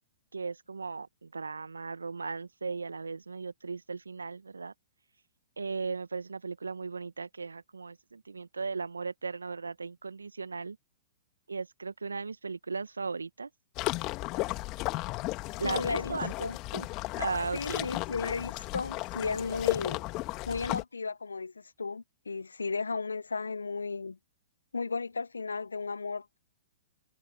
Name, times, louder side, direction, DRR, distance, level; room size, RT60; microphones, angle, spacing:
voice 1, 0.3-4.7 5.6-10.8 11.5-13.5 15.6-16.9 17.2-17.9, right 4 dB, 80° right, 1.8 m, -37 dB
sound 1, 13.8-20.8, left 21 dB, 35° left, 2.1 m, -34 dB
voice 2, 15.6-16.6 17.5-20.0 20.5-24.2 24.7-26.4, left 4 dB, 80° left, 0.8 m, -35 dB
figure-of-eight pair, 110°, 0 cm